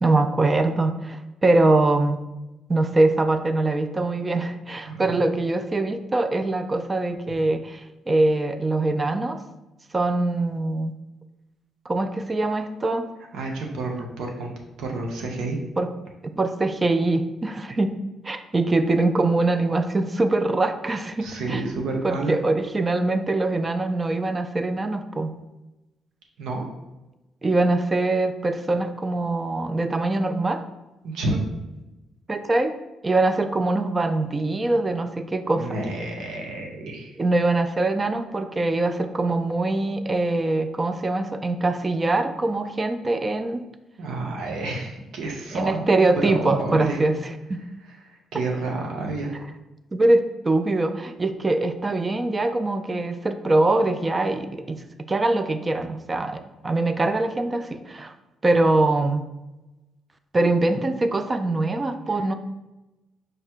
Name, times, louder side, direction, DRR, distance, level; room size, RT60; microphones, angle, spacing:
voice 1, 0.0-2.2 2.7-9.4 9.9-10.9 11.9-13.1 15.8-15.9 16.4-17.9 18.2-21.6 22.0-25.3 27.4-30.6 32.3-32.8 33.0-35.7 37.2-43.6 45.5-47.2 47.5-47.6 49.9-58.1 58.4-59.2 60.3-62.3, right 2 dB, 25° right, 9 dB, 0.4 m, -23 dB
voice 2, 4.9-5.2 13.3-14.5 14.8-15.6 21.2-22.3 26.4-26.7 31.0-31.5 35.5-37.1 44.0-45.8 46.2-47.0 48.0-49.4, right 2 dB, 80° right, 1 dB, 0.8 m, -29 dB
4.9 x 2.2 x 4.4 m, 1.0 s
cardioid pair, 90°, 0 cm